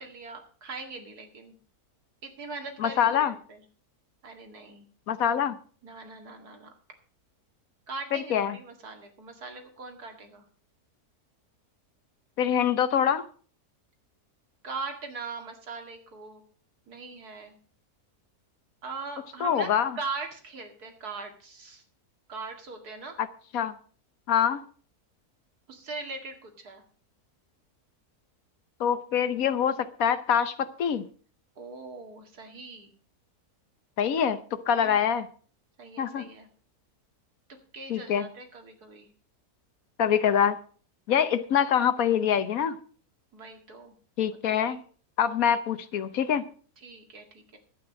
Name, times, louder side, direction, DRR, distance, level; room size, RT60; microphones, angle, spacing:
voice 1, 0.0-1.5 2.2-3.6 4.2-4.9 5.8-6.7 7.9-10.4 14.6-16.4 16.9-17.5 18.8-19.7 20.0-21.8 22.3-23.2 25.7-26.8 31.6-32.9 34.7-35.1 35.8-36.5 37.7-39.1 43.3-43.9 44.4-44.8 46.8-47.6, right 4 dB, 75° right, 2.6 m, -40 dB
voice 2, 2.8-3.3 5.1-5.5 8.1-8.6 12.4-13.2 19.4-20.0 23.2-23.3 23.5-23.7 24.3-24.6 28.8-31.0 34.0-34.4 34.7-35.3 36.0-36.3 37.9-38.3 40.0-40.6 41.1-42.8 44.2-44.8 45.2-46.4, left 8 dB, 65° left, 1.2 m, -25 dB
11.5 x 8.8 x 6.3 m
omnidirectional pair, 1.7 m